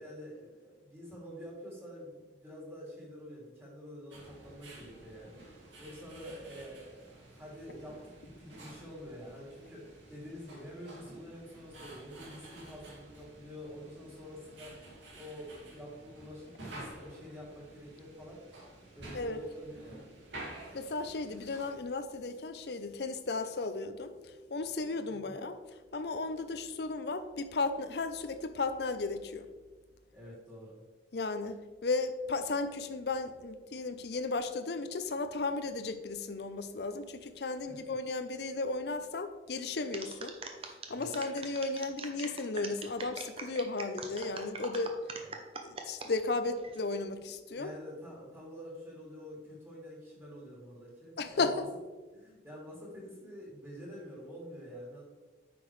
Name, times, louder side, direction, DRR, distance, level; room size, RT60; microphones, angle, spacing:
voice 1, 0.0-5.4 5.8-18.6 18.9-20.1 25.1-25.3 30.1-30.8 37.7-37.9 40.9-41.1 45.2-45.4 47.5-51.6 52.1-55.0, equal, 15° right, -5 dB, 2.7 m, -47 dB
sound 1, 4.1-21.7, right 1 dB, 90° right, 2.3 m, -51 dB
voice 2, 20.7-24.1 24.5-25.6 25.9-29.4 31.1-40.3 40.9-44.9 45.6-47.7 51.2-51.7, left 3 dB, 65° left, 9 dB, 0.6 m, -35 dB
sound 2, 39.9-46.1 46.6-47.0, right 4 dB, 30° right, 0.7 m, -43 dB
9.5 x 6.0 x 3.2 m, 1.3 s
head